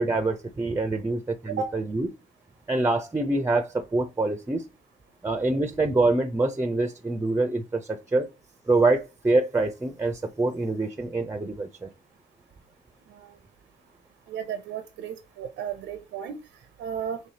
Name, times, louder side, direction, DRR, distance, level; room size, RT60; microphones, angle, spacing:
voice 1, 0.0-2.1 2.7-4.6 5.2-8.3 8.7-11.9, right 2 dB, 15° right, 0.5 m, -25 dB
voice 2, 14.3-17.2, right 7 dB, 75° right, 0.6 m, -34 dB
4.8 x 3.1 x 2.8 m
cardioid pair, 90°, 20 cm